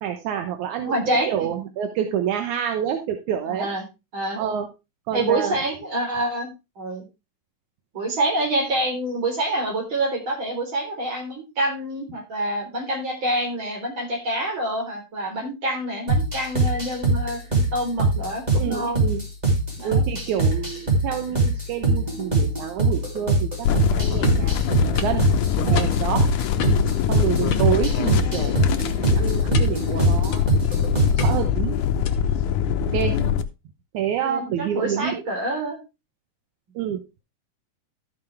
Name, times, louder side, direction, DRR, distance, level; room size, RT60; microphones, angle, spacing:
voice 1, 0.0-3.7 4.4-4.7 5.1-5.6 18.6-19.2 19.8-25.3 25.6-26.2 27.1-30.4 30.8-31.8 32.9-33.4 33.9-35.2 36.8-37.0, right 9 dB, 75° right, 6 dB, 2.3 m, -28 dB
voice 2, 0.8-1.5 3.5-3.9 4.1-4.4 5.1-7.0 7.9-19.0 19.8-20.0 26.6-26.8 27.4-27.7 33.1-33.3 34.2-35.8, right 1 dB, 40° right, 0 dB, 4.5 m, -27 dB
sound 1, 16.1-31.4, right 2 dB, 15° right, 2.7 m, -23 dB
sound 2, 23.7-33.4, left 9 dB, 80° left, 2.2 m, -23 dB
sound 3, 24.2-24.5 25.0-25.2 25.8-26.2 26.6-26.9 27.5-28.3 28.6-28.8 29.5-29.9 30.3-30.7 31.2-31.6 32.0-32.4, left 7 dB, 55° left, 1.6 m, -33 dB
13.0 x 7.0 x 3.3 m, 0.26 s
omnidirectional pair, 3.6 m